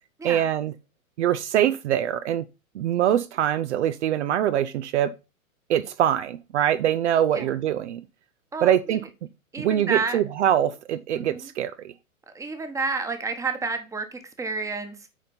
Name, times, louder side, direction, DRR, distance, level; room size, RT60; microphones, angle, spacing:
voice 1, 0.2-0.7 1.2-2.4 2.7-5.2 5.7-8.0 8.6-9.0 9.6-11.9, right 10 dB, 55° right, 0.8 m, -23 dB
voice 2, 9.5-10.2 11.2-11.5 12.3-15.1, right 4 dB, 5° right, 1.2 m, -30 dB
9.2 x 4.3 x 4.3 m
hypercardioid pair, 120°, 41 cm